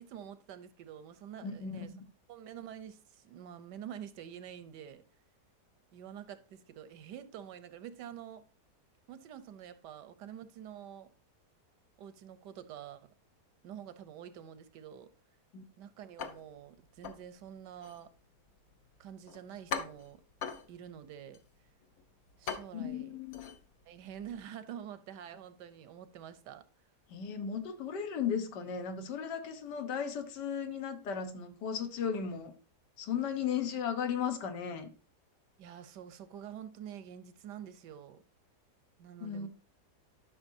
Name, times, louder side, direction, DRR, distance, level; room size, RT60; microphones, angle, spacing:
voice 1, 0.0-1.9 2.3-5.0 5.9-8.4 9.1-11.1 12.0-13.1 13.6-15.1 15.8-18.1 19.0-20.2 20.7-21.4 22.4-23.2 23.9-26.7 35.6-38.2 39.0-39.5, right 9 dB, 85° right, 1.4 m, -47 dB
voice 2, 1.4-1.8 15.5-15.6 22.7-23.6 27.1-32.5 33.0-34.9 39.2-39.5, left 7 dB, 85° left, 1.6 m, -36 dB
sound 1, 16.2-24.4, left 6 dB, 60° left, 1.1 m, -44 dB
11.5 x 6.1 x 2.7 m
omnidirectional pair, 1.8 m